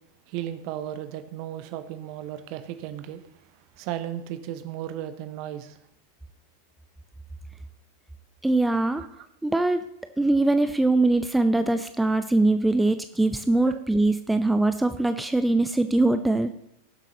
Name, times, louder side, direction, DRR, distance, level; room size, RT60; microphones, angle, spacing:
voice 1, 0.3-3.2 3.8-5.8 9.0-9.1 13.7-13.8, right 11 dB, 45° right, 11 dB, 0.9 m, -35 dB
voice 2, 8.4-9.0 9.4-9.9 10.2-16.5, right 2 dB, 5° right, 9 dB, 0.6 m, -22 dB
18.5 x 7.7 x 3.1 m, 0.79 s
figure-of-eight pair, 90°, 0 cm